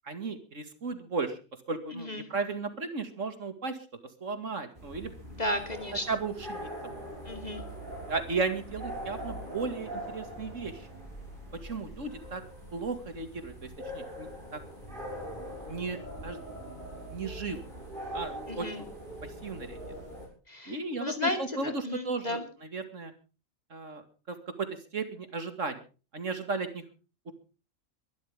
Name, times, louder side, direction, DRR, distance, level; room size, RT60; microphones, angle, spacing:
voice 1, 0.0-1.4 1.7-3.8 4.2-5.1 6.1-6.7 8.1-10.9 11.6-12.4 12.7-13.7 13.9-14.6 15.7-16.4 16.8-17.6 18.1-18.9 19.4-19.8 20.7-23.1 23.7-24.7 24.9-25.8 26.1-26.8 27.3-27.4, right 4 dB, 65° right, 9 dB, 2.5 m, -35 dB
voice 2, 1.9-2.3 5.4-6.2 7.3-7.6 18.5-18.8 20.5-22.4, left 1 dB, 30° left, 6 dB, 2.6 m, -34 dB
sound 1, 4.8-20.3, equal, 35° right, 6.8 m, -42 dB
22.5 x 12.5 x 3.6 m, 0.35 s
omnidirectional pair, 1.4 m